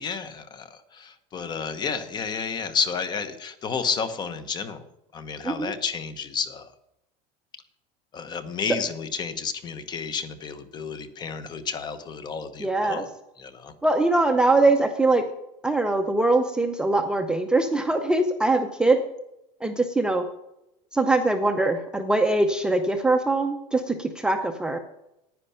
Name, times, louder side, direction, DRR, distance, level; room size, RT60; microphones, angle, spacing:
voice 1, 0.0-4.8 5.1-6.7 8.1-13.1 13.4-13.7, left 6 dB, 25° left, 11 dB, 1.0 m, -31 dB
voice 2, 12.6-13.0 13.8-15.2 15.6-19.0 19.6-20.2 20.9-24.8, right 2 dB, 5° right, 5 dB, 0.6 m, -22 dB
10.5 x 9.7 x 5.7 m, 0.85 s
cardioid pair, 160°, 16 cm